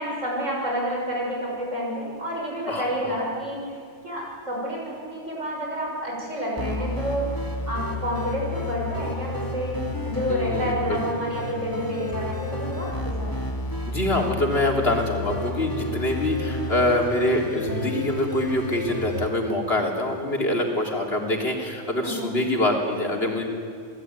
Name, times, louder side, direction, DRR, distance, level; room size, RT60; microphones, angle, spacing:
voice 1, 0.0-3.6 4.0-7.2 7.7-9.7 10.0-13.3 22.0-22.3, equal, 70° right, -3 dB, 6.8 m, -29 dB
voice 2, 2.7-3.2 10.3-11.0 13.9-23.4, left 1 dB, 50° left, 1 dB, 3.8 m, -25 dB
sound 1, 6.6-19.3, left 2 dB, 15° left, 2.5 m, -31 dB
29.5 x 18.5 x 9.7 m, 2.3 s
omnidirectional pair, 1.3 m